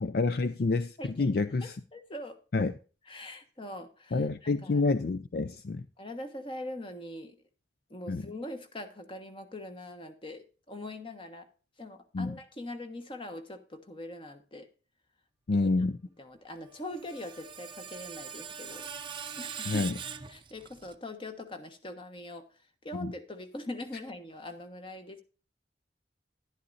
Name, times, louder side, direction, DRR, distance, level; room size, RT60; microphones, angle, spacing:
voice 1, 0.0-1.8 2.5-2.7 4.1-5.8 8.1-8.3 12.1-12.4 15.5-15.9 19.7-19.9 22.9-23.1, left 3 dB, 55° left, 0.4 m, -28 dB
voice 2, 1.0-1.3 1.6-2.4 3.0-4.8 6.0-7.4 7.9-11.5 11.8-14.7 15.5-15.7 16.2-18.9 19.4-19.9 20.3-25.2, left 1 dB, 30° left, 1.3 m, -42 dB
Screech, 16.7-20.9, right 7 dB, 30° right, 0.7 m, -42 dB
11.5 x 11.0 x 2.6 m
head